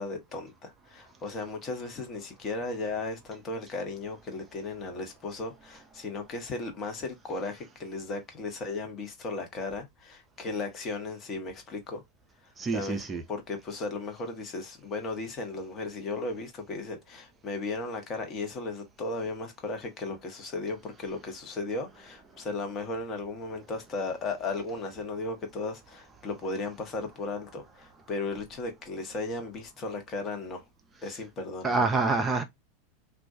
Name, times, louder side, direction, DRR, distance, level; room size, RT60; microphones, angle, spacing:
voice 1, 0.0-12.0 12.7-30.6 31.0-31.9, left 3 dB, 30° left, 0.8 m, -36 dB
voice 2, 12.6-13.2 31.6-32.4, right 3 dB, 20° right, 0.4 m, -26 dB
2.2 x 2.1 x 2.6 m
figure-of-eight pair, 85°, 0 cm